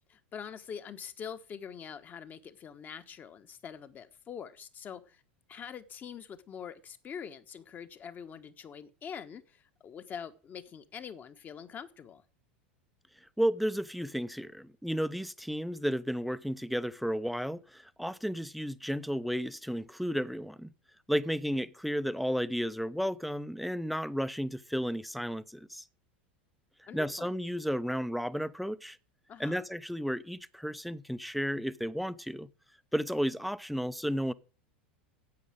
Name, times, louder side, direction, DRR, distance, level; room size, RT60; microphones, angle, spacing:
voice 1, 0.1-5.2 5.5-12.2 26.9-27.3 29.3-29.6, left 7 dB, 35° left, 1.4 m, -44 dB
voice 2, 13.4-20.7 21.1-25.8 26.8-29.0 29.4-32.5 32.9-34.3, equal, ahead, 0.7 m, -33 dB
9.4 x 8.4 x 8.9 m
hypercardioid pair, 90°, 6 cm